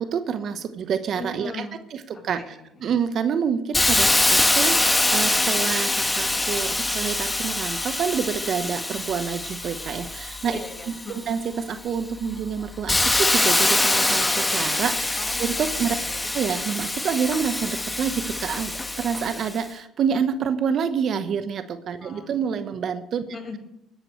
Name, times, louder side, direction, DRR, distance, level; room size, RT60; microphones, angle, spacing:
voice 1, 0.0-1.7 1.9-2.5 2.8-10.6 11.1-16.0 16.3-23.2, right 7 dB, 55° right, 10 dB, 1.1 m, -27 dB
voice 2, 1.2-1.8 2.1-2.7 10.4-11.2 15.2-15.4 16.0-16.3 22.0-22.3 23.3-23.6, left 3 dB, 35° left, 3 dB, 5.5 m, -38 dB
Hiss, 3.7-11.3 11.8-19.6, left 2 dB, 15° left, 1.3 m, -24 dB
21.0 x 11.0 x 3.2 m, 0.85 s
hypercardioid pair, 60°, 0 cm